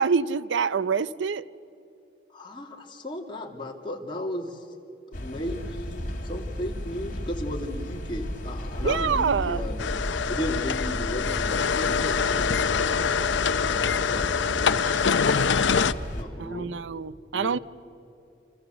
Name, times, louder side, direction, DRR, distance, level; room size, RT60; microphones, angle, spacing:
voice 1, 0.0-1.5 8.8-9.6 14.8-15.0 16.4-17.6, right 5 dB, 80° right, 0.6 m, -26 dB
voice 2, 2.3-4.6 5.1-9.9 10.3-13.3 13.6-14.8 16.1-16.8 17.3-17.6, left 1 dB, 25° left, 2.5 m, -35 dB
sound 1, 5.1-16.2, equal, 45° left, 2.9 m, -34 dB
sound 2, 9.8-15.9, left 6 dB, 80° left, 0.7 m, -24 dB
29.0 x 27.5 x 6.9 m
head